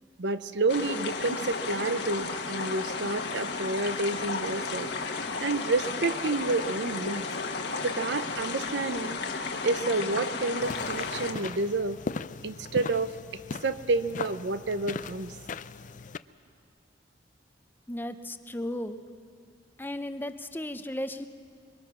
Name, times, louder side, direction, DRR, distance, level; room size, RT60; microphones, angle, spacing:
voice 1, 0.2-4.9 5.4-7.3 7.8-9.2 9.6-12.0 12.4-13.2 13.6-15.3, right 3 dB, 70° right, 12 dB, 0.7 m, -29 dB
sound 1, 0.7-11.3, left 4 dB, 60° left, 1.5 m, -33 dB
sound 2, 10.6-16.2, left 4 dB, 45° left, 0.5 m, -38 dB
voice 2, 17.9-19.0 19.8-21.3, left 1 dB, 10° left, 9 dB, 0.7 m, -35 dB
26.0 x 23.0 x 6.2 m, 2.3 s
head